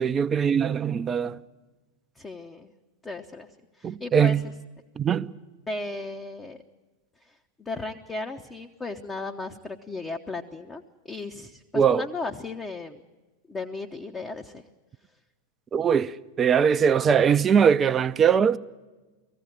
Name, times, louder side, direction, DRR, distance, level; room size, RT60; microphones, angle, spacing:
voice 1, 0.0-1.4 3.8-4.4 5.0-5.3 11.7-12.1 15.7-18.6, right 7 dB, 20° right, 0.5 m, -21 dB
voice 2, 2.2-2.7 3.0-3.5 3.8-4.4 5.7-6.6 7.3-13.0 13.5-14.6, left 3 dB, 15° left, 0.8 m, -35 dB
19.5 x 15.0 x 9.0 m
figure-of-eight pair, 90°, 0 cm